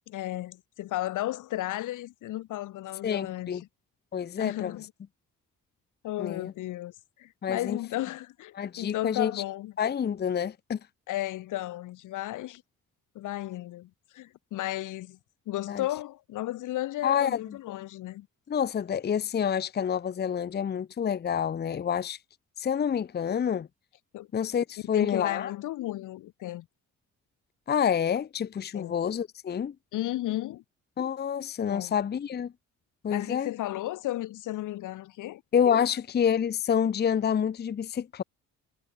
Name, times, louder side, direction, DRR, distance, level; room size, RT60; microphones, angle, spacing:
voice 1, 0.1-3.7 4.4-4.9 6.0-9.7 11.1-12.6 13.1-15.2 15.5-18.3 24.1-24.3 24.9-26.7 28.7-28.9 29.9-30.6 31.7-31.9 33.1-35.4, left 15 dB, 85° left, 2.4 m, -34 dB
voice 2, 3.0-3.6 4.1-4.7 6.2-6.5 7.4-7.8 8.5-9.3 9.8-10.8 15.7-15.8 17.0-17.4 18.5-22.2 22.6-23.7 24.3-25.5 27.7-29.7 31.0-32.5 33.0-33.5 35.5-38.2, left 8 dB, 35° left, 0.7 m, -28 dB
cardioid pair, 90°, 30 cm